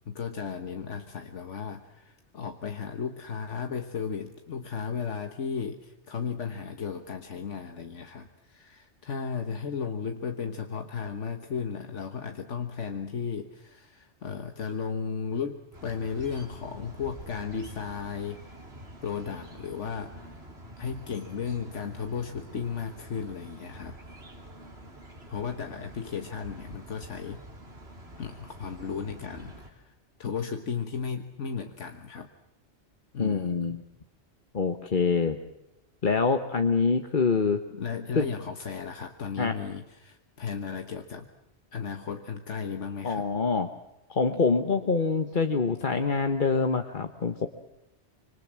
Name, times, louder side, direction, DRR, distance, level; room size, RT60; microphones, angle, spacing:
voice 1, 0.0-18.4 19.0-20.4 20.8-23.9 25.3-27.4 28.2-29.9 30.2-32.3 33.1-33.8 37.7-41.3 41.7-43.3, left 6 dB, 80° left, 6 dB, 1.6 m, -35 dB
sound 1, 15.7-29.7, right 1 dB, 60° right, 3.8 m, -47 dB
voice 2, 33.2-33.8 34.5-35.4 36.0-37.6 38.1-38.3 39.4-39.5 43.0-43.7 44.1-47.5, left 4 dB, 45° left, 7 dB, 1.3 m, -25 dB
26.0 x 25.5 x 7.5 m, 0.91 s
omnidirectional pair, 1.2 m